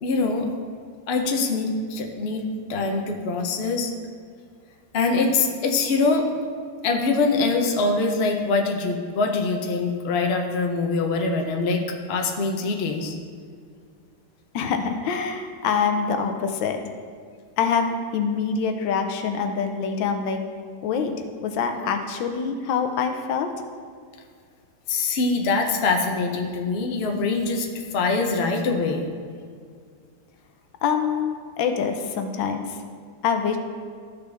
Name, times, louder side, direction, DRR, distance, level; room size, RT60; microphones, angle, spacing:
voice 1, 0.0-0.5 1.1-2.4 2.7-3.9 4.9-6.3 6.8-13.1 24.9-27.7 27.9-29.1, left 3 dB, 50° left, 2 dB, 0.8 m, -23 dB
voice 2, 14.5-16.8 17.6-20.4 20.8-21.1 21.4-23.5 30.8-32.8 33.2-33.6, left 6 dB, 80° left, 5 dB, 1.4 m, -25 dB
13.5 x 5.3 x 3.4 m, 2.1 s
omnidirectional pair, 2.0 m